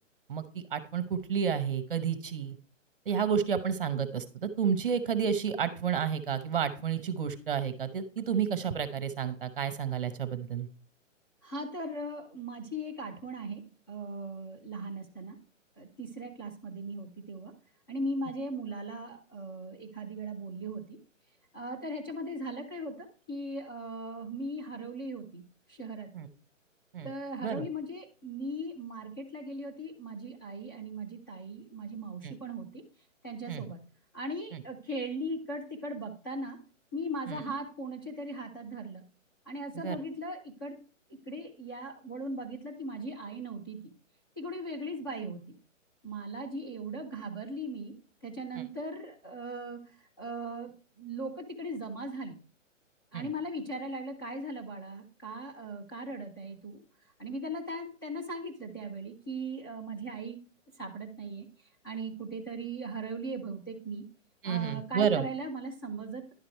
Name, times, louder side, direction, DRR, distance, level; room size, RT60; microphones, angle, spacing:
voice 1, 0.7-2.5 3.1-10.7 26.1-26.3 26.9-27.1 27.4-27.7 32.2-32.3 33.5-33.6 34.5-34.6 37.3-37.4 39.8-40.0 53.1-53.3 64.4-65.3, right 7 dB, 45° right, 12 dB, 0.9 m, -30 dB
voice 2, 11.4-15.4 15.8-17.5 17.9-21.0 21.5-25.4 25.7-26.1 27.0-32.8 33.2-33.8 34.1-36.6 36.9-39.0 39.5-40.8 41.3-43.9 44.4-45.5 46.0-47.9 48.2-49.9 50.2-52.4 53.1-56.8 57.2-60.4 60.8-61.5 61.8-64.1 64.4-66.2, right 1 dB, 20° left, 0 dB, 0.7 m, -38 dB
10.5 x 4.8 x 4.5 m, 0.36 s
hypercardioid pair, 175°, 39 cm